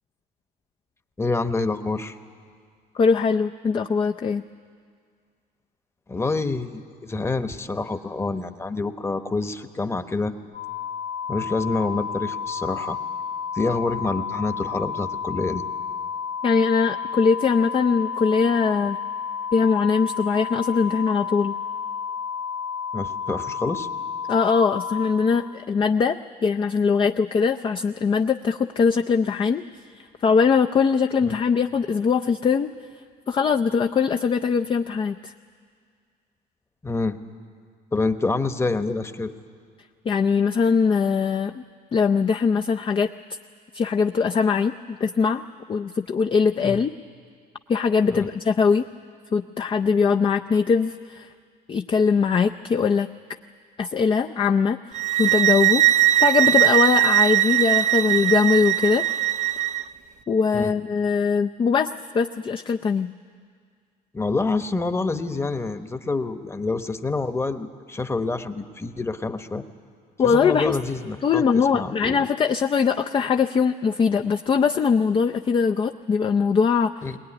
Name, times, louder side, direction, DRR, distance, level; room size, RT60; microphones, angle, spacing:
voice 1, 1.2-2.2 6.1-10.3 11.3-13.0 13.5-15.6 22.9-23.9 31.2-31.4 36.8-37.2 37.9-39.3 46.6-46.8 48.1-48.3 60.5-60.7 64.1-69.6 70.2-72.2 77.0-77.2, left 3 dB, 15° left, 9 dB, 1.0 m, -27 dB
voice 2, 2.9-4.4 16.4-19.0 19.5-21.5 24.3-29.6 30.0-32.7 33.3-35.3 40.1-41.6 41.9-43.1 43.7-45.4 45.7-46.9 47.7-48.8 49.3-51.3 51.7-53.1 53.8-54.8 55.2-55.8 56.2-59.0 60.3-63.1 70.2-70.8 71.2-76.9, left 5 dB, 30° left, 6 dB, 0.5 m, -21 dB
sound 1, 10.5-25.1, left 6 dB, 65° right, 1.4 m, -31 dB
sound 2, 54.9-59.8, right 15 dB, 45° right, 0.5 m, -20 dB
20.5 x 19.5 x 9.9 m, 2.1 s
cardioid pair, 110°, 17 cm